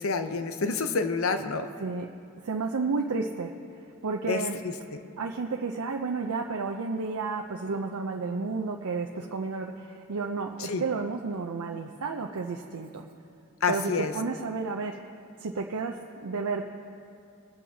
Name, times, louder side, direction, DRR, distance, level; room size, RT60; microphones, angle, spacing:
voice 1, 0.0-1.7 4.3-4.4 10.6-10.8 13.6-14.1, left 4 dB, 70° left, 8 dB, 0.7 m, -28 dB
voice 2, 2.4-3.5 4.0-4.6 5.2-13.1 13.7-15.0 15.4-16.6, right 4 dB, 80° right, 2 dB, 0.6 m, -31 dB
24.0 x 8.4 x 2.8 m, 2.5 s
head